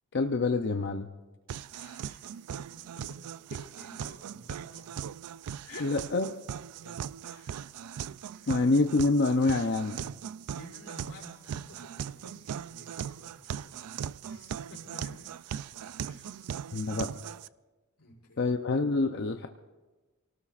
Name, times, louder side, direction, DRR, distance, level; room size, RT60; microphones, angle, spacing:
voice 1, 0.1-1.1 5.8-6.3 8.5-10.0 16.7-17.1 18.4-19.5, left 3 dB, 50° left, 5 dB, 0.6 m, -26 dB
sound 1, 1.5-17.5, right 8 dB, 85° right, 0.4 m, -39 dB
voice 2, 1.7-3.3 3.8-4.9 5.6-5.9 6.8-7.5 8.3-8.5 10.4-15.2 16.1-16.4 18.0-18.4, left 2 dB, 80° left, -2 dB, 5.4 m, -52 dB
29.5 x 18.0 x 2.5 m, 1.2 s
head